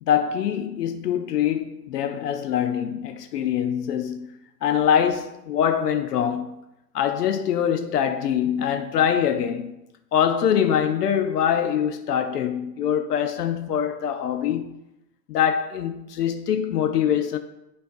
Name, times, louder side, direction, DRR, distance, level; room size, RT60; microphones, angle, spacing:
voice 1, 0.0-6.5 6.9-9.7 10.1-14.8 15.3-17.4, left 9 dB, 75° left, 0.7 m, -24 dB
12.0 x 4.0 x 2.6 m
supercardioid pair, 175°, 48 cm